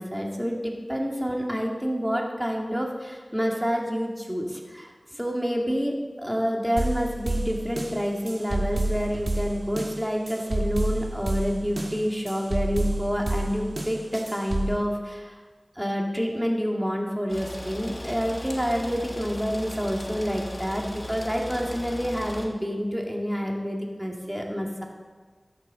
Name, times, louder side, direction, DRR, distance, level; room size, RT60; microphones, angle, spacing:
voice 1, 0.0-15.4 15.8-24.9, equal, 10° right, 0 dB, 2.1 m, -28 dB
sound 1, 6.8-14.8, right 2 dB, 65° right, 1.5 m, -29 dB
sound 2, 17.3-22.5, left 1 dB, 50° left, 1.7 m, -38 dB
13.5 x 9.4 x 4.0 m, 1.4 s
wide cardioid pair, 40°, 0 cm